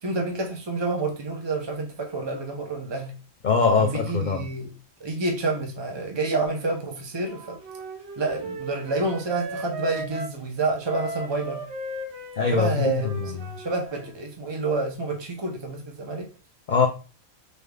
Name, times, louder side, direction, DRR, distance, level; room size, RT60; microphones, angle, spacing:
voice 1, 0.0-3.1 3.8-4.7 5.0-7.6 8.2-11.6 12.5-16.3, right 3 dB, 40° right, 0.4 m, -29 dB
voice 2, 3.4-4.5 12.4-13.3 16.7-16.9, left 5 dB, 90° left, 0.4 m, -22 dB
Wind instrument woodwind instrument, 7.2-10.4 10.8-14.2, right 2 dB, 55° right, 1.0 m, -36 dB
5.4 x 3.2 x 2.2 m
omnidirectional pair, 1.5 m